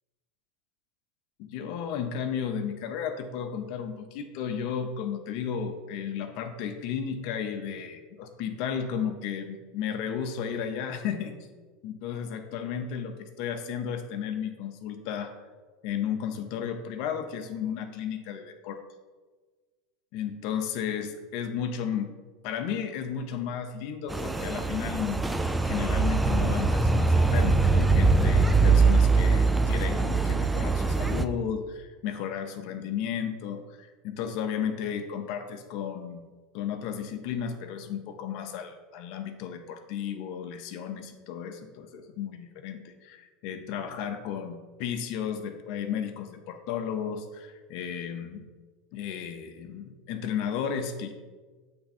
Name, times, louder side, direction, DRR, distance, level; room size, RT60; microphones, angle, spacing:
voice 1, 1.4-11.5 11.8-15.3 15.8-18.8 20.1-22.1 22.4-25.2 25.6-36.2 36.5-48.4 48.9-51.1, left 8 dB, 60° left, 6 dB, 0.6 m, -33 dB
sound 1, 24.1-31.2, right 3 dB, 5° right, 0.3 m, -23 dB
7.7 x 3.4 x 4.2 m, 1.4 s
supercardioid pair, 130°, 0 cm